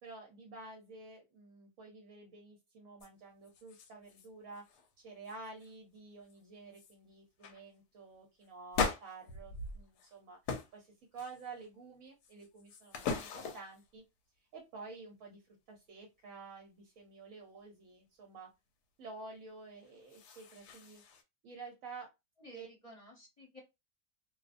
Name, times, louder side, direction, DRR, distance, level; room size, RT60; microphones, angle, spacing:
voice 1, 0.0-4.6 5.0-10.4 10.7-14.0 14.4-18.5 19.0-21.0 21.4-22.1 22.5-22.7, right 3 dB, 65° right, 1 dB, 1.0 m, -50 dB
sound 1, 3.0-3.1 3.4-4.3 4.5-4.9 5.2-5.7 6.3-6.4 6.7-6.9 7.4-7.6 8.7-10.1 10.5-10.8 11.2-11.7 12.2-13.8 19.8-21.2, left 4 dB, 85° left, 1.1 m, -39 dB
voice 2, 22.4-23.6, left 1 dB, 25° left, -2 dB, 0.9 m, -54 dB
2.6 x 2.0 x 2.4 m, 0.23 s
omnidirectional pair, 1.7 m